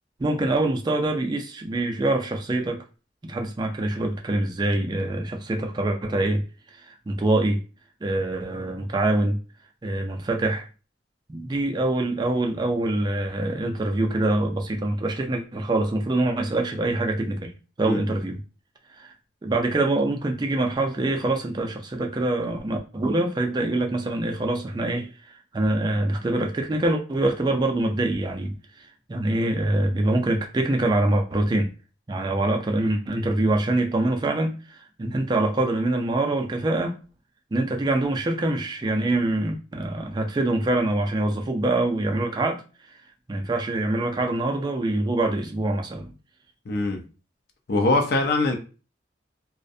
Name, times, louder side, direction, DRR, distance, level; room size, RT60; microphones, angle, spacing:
voice 1, 0.2-2.8 3.2-6.4 6.8-7.6 8.0-9.4 9.8-10.7 11.3-17.5 17.8-18.4 18.9-19.1 19.4-28.5 29.1-31.7 32.1-37.0 37.5-42.6 43.3-46.1, right 2 dB, 25° right, 0.3 m, -25 dB
voice 2, 46.7-47.0 47.7-48.6, left 2 dB, 55° left, 0.5 m, -22 dB
2.4 x 2.0 x 2.6 m
head